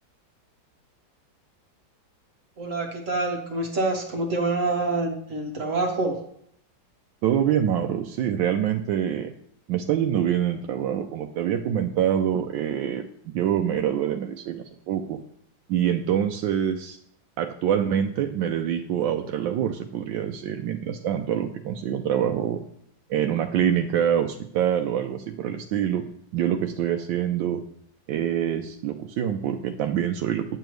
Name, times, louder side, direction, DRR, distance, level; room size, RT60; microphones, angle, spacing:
voice 1, 2.6-6.1, right 2 dB, 45° right, 2 dB, 1.4 m, -26 dB
voice 2, 7.2-9.3 9.7-15.2 15.7-17.0 17.4-22.6 23.1-26.0 26.3-27.6 28.1-30.6, right 9 dB, 85° right, 4 dB, 1.3 m, -25 dB
9.6 x 6.9 x 3.1 m, 0.70 s
omnidirectional pair, 2.0 m